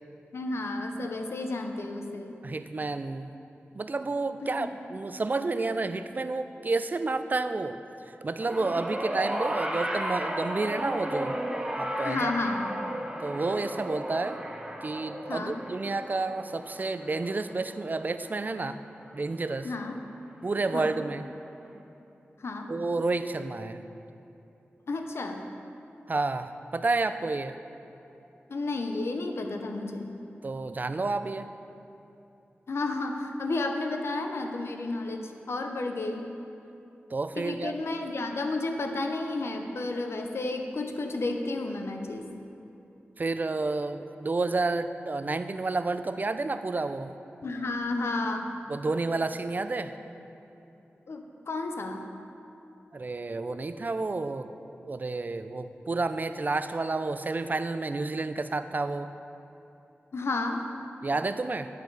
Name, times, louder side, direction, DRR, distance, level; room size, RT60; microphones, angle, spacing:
voice 1, 0.3-2.4 4.4-4.7 12.0-12.7 15.3-15.6 19.6-20.0 20.7-20.9 22.4-22.7 24.9-25.4 28.5-30.1 32.7-36.3 37.4-42.3 47.4-48.5 51.1-52.1 60.1-60.6, left 2 dB, 75° left, 4 dB, 0.6 m, -32 dB
voice 2, 2.4-3.3 3.7-7.8 8.1-11.4 11.8-12.3 13.2-14.4 14.8-18.8 19.1-19.7 20.4-21.2 22.7-23.8 26.1-27.6 30.4-31.5 37.1-37.8 43.2-47.1 48.7-49.9 52.9-54.5 54.8-59.1 61.0-61.7, right 3 dB, 40° right, 10 dB, 0.4 m, -30 dB
sound 1, 8.4-18.8 19.9-20.0, equal, 15° right, 0.9 m, -34 dB
9.6 x 4.6 x 4.7 m, 2.9 s
cardioid pair, 50°, 4 cm